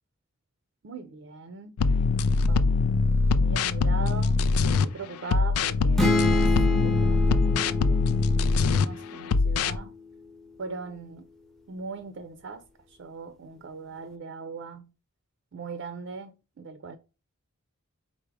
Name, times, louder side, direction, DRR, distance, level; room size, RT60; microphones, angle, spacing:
voice 1, 0.8-1.7 2.5-2.9 3.3-8.1 8.6-9.9 10.6-11.3 11.7-14.9 15.5-17.0, right 4 dB, 55° right, 0.4 m, -40 dB
sound 1, 1.8-4.9 5.3-8.9 9.3-9.8, left 3 dB, 90° left, 0.4 m, -23 dB
sound 2, 6.0-9.7, left 2 dB, ahead, 0.5 m, -28 dB
4.7 x 2.1 x 4.6 m
head